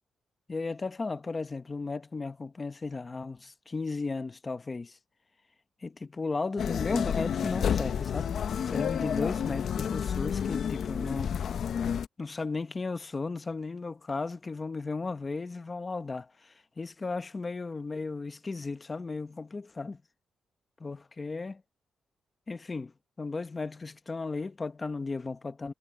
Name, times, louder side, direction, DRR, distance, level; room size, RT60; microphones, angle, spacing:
voice 1, 0.5-5.0 5.8-11.5 12.2-20.0 20.8-21.6 22.5-22.9 23.2-25.7, left 3 dB, 20° left, 0.8 m, -35 dB
sound 1, 6.6-12.1, left 8 dB, 50° left, 0.6 m, -30 dB
wide cardioid pair, 180°, 0 cm